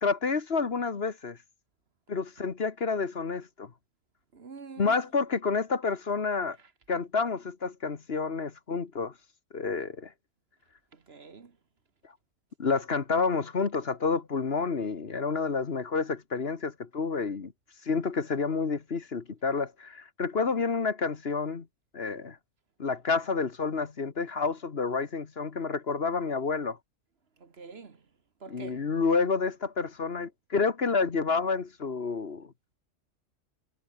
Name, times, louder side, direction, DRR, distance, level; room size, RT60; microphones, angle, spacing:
voice 1, 0.0-1.4 2.1-3.7 4.8-6.6 6.9-9.1 9.5-10.1 12.6-17.5 17.8-21.6 21.9-22.4 22.8-26.8 28.5-32.5, left 4 dB, 50° left, 1.6 m, -29 dB
voice 2, 4.3-5.1 6.6-6.7 10.9-11.6 27.4-28.0 28.4-28.9, right 4 dB, 50° right, 1.7 m, -46 dB
omnidirectional pair, 1.3 m